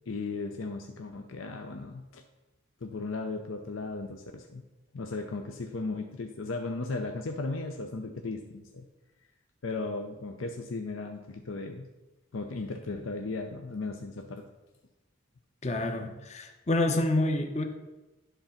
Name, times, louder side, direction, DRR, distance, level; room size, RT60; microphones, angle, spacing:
voice 1, 0.1-2.2 2.8-4.6 4.9-8.9 9.6-11.9 12.3-14.5, left 3 dB, 75° left, 4 dB, 0.6 m, -36 dB
voice 2, 15.6-17.6, left 1 dB, 35° left, 4 dB, 0.7 m, -28 dB
11.5 x 3.9 x 5.7 m, 1.1 s
head